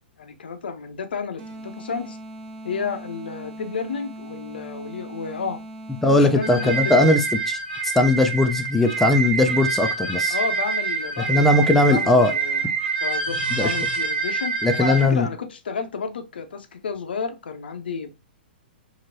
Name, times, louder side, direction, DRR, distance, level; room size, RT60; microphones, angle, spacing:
voice 1, 0.2-2.2 2.6-5.6 6.2-7.1 10.3-12.7 13.0-18.2, left 5 dB, 70° left, 0.5 m, -31 dB
sound 1, 1.4-7.3, right 1 dB, 35° right, 1.1 m, -40 dB
voice 2, 6.0-7.2 7.8-10.4 11.3-12.3 13.5-13.7 14.6-15.3, left 2 dB, 5° left, 0.3 m, -18 dB
sound 2, 6.4-15.1, right 5 dB, 65° right, 1.1 m, -26 dB
2.9 x 2.7 x 2.6 m
figure-of-eight pair, 110°, 6 cm